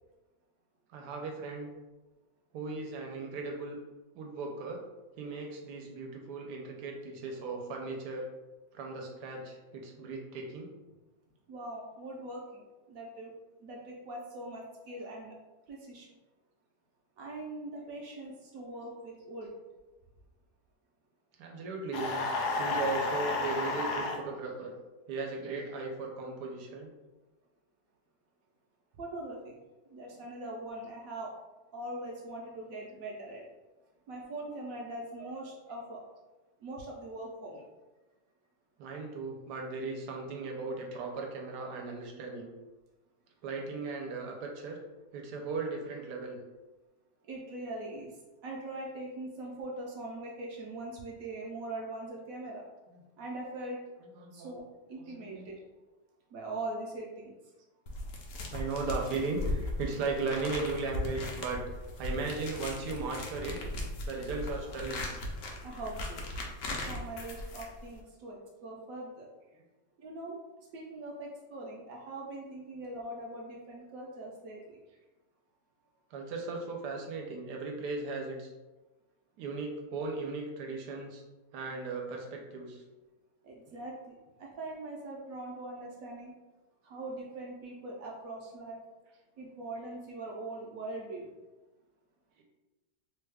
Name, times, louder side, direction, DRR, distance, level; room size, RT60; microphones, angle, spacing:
voice 1, 0.9-1.7 2.5-3.8 4.1-4.8 5.2-8.3 8.7-10.7 18.7-18.8 21.4-22.2 22.6-24.7 25.1-26.9 38.8-42.5 43.4-44.8 45.1-46.4 52.9-53.0 54.1-54.5 55.0-55.5 58.5-61.6 62.0-63.6 64.0-65.1 76.1-78.5 79.4-81.2 81.5-82.8 89.8-89.9 92.4-92.5, right 3 dB, 90° right, 1 dB, 1.2 m, -37 dB
voice 2, 11.5-13.3 13.6-15.4 15.7-16.1 17.2-19.5 28.9-29.6 29.9-31.3 31.7-33.4 34.1-36.0 36.6-37.6 47.3-48.1 48.4-52.6 53.2-53.8 54.3-54.6 54.9-55.6 56.3-57.3 65.6-66.2 66.7-69.3 70.0-70.4 70.7-74.8 83.4-86.3 86.8-88.8 89.4-91.3, right 2 dB, 70° right, -2 dB, 0.9 m, -41 dB
sound 1, 21.9-24.2, left 3 dB, 80° left, 1.1 m, -31 dB
sound 2, 57.9-68.0, left 1 dB, 65° left, 0.8 m, -38 dB
3.1 x 2.2 x 3.3 m, 1.1 s
omnidirectional pair, 1.7 m